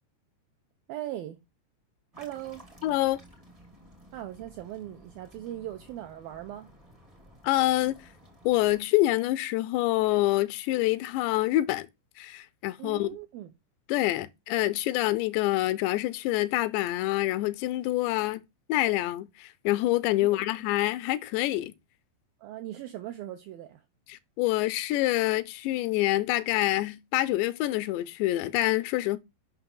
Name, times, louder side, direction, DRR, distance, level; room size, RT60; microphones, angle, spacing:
voice 1, 0.9-1.4 2.1-2.6 4.1-6.7 12.8-13.5 20.2-20.4 22.4-23.8, right 13 dB, 85° right, 2.1 m, -39 dB
sound 1, 2.1-8.8, equal, 40° right, 0.5 m, -54 dB
voice 2, 2.8-3.2 7.4-8.0 8.4-11.9 12.2-13.1 13.9-18.4 18.7-21.7 24.1-29.2, left 16 dB, 85° left, 2.8 m, -26 dB
6.8 x 5.9 x 3.8 m
omnidirectional pair, 5.1 m